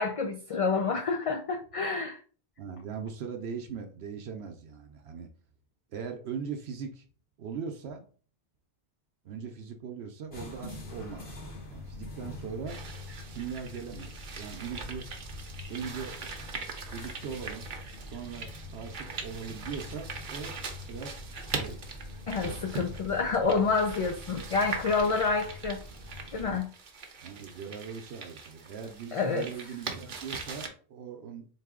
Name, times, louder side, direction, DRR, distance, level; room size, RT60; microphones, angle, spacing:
voice 1, 0.0-2.2 22.3-25.8 26.3-26.7 29.1-29.5, left 4 dB, 50° left, 3 dB, 0.4 m, -28 dB
voice 2, 2.6-5.3 5.9-7.0 7.4-8.0 9.2-11.4 11.7-12.8 13.3-15.1 15.7-16.2 16.9-17.6 18.0-20.6 20.9-21.8 24.4-24.5 27.2-31.5, right 6 dB, 85° right, 4 dB, 0.9 m, -40 dB
sound 1, 10.3-26.6, left 2 dB, 75° left, 1.5 m, -44 dB
sound 2, 12.7-30.7, right 4 dB, 55° right, 0.8 m, -42 dB
4.0 x 2.6 x 3.6 m, 0.41 s
omnidirectional pair, 1.0 m